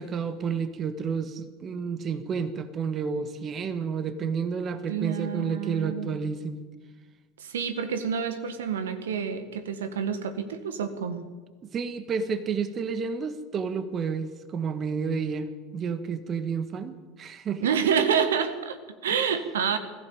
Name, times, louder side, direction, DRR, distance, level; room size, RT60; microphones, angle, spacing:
voice 1, 0.0-6.6 11.6-15.5 15.7-17.7, right 6 dB, 35° right, 11 dB, 1.6 m, -30 dB
voice 2, 4.9-6.2 7.4-11.3 17.6-19.8, right 7 dB, 75° right, 10 dB, 1.7 m, -28 dB
21.0 x 15.5 x 8.8 m, 1.4 s
figure-of-eight pair, 70°, 0 cm